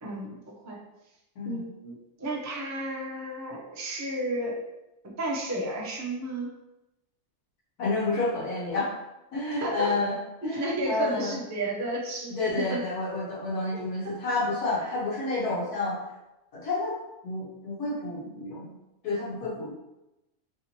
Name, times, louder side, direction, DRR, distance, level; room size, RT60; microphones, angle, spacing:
voice 1, 0.0-0.8 1.4-4.6 5.0-6.5 9.6-9.9 10.4-12.8 13.7-13.9 14.8-15.0, right 1 dB, 20° right, -3 dB, 0.4 m, -32 dB
voice 2, 1.3-1.7 7.8-8.9 9.3-10.1 10.4-11.4 12.3-16.0 16.5-18.7 19.0-19.7, left 2 dB, 90° left, -6 dB, 1.7 m, -30 dB
3.5 x 2.9 x 4.2 m, 0.95 s
omnidirectional pair, 1.6 m